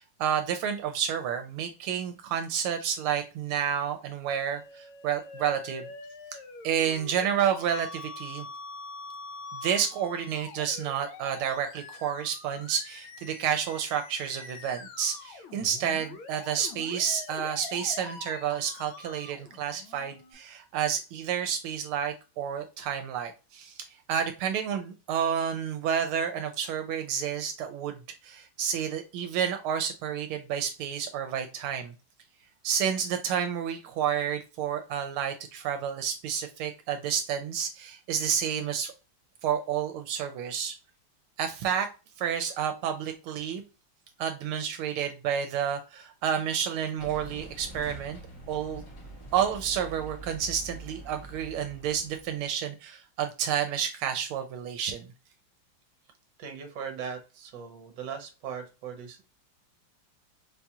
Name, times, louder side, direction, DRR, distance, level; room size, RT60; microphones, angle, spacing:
voice 1, 0.0-5.8 6.6-8.5 9.5-28.0 28.2-31.9 32.6-38.9 39.4-40.7 41.4-41.9 42.2-43.6 44.2-48.2 48.5-48.8 49.3-55.1, right 8 dB, 80° right, 6 dB, 1.4 m, -30 dB
Musical instrument, 4.4-20.3, left 4 dB, 75° left, 1.4 m, -45 dB
sound 1, 47.0-52.5, right 2 dB, 45° left, 1.3 m, -45 dB
voice 2, 56.4-59.2, right 7 dB, 65° right, 6 dB, 1.4 m, -39 dB
4.2 x 2.3 x 2.7 m, 0.30 s
omnidirectional pair, 2.3 m